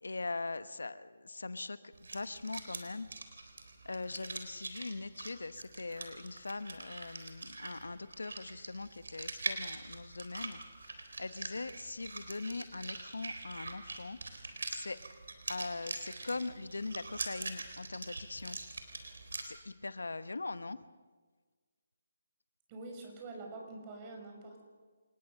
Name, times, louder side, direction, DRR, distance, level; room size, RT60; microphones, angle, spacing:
voice 1, 0.0-3.4 3.8-14.2 14.7-15.0 15.5-18.6 19.4-20.8, left 3 dB, 90° left, 13 dB, 1.1 m, -41 dB
sound 1, 1.9-19.4, right 3 dB, 80° right, 3.9 m, -44 dB
voice 2, 22.7-24.6, right 2 dB, 25° right, 2 dB, 6.4 m, -46 dB
27.5 x 19.5 x 6.7 m, 1.4 s
hypercardioid pair, 155°, 0 cm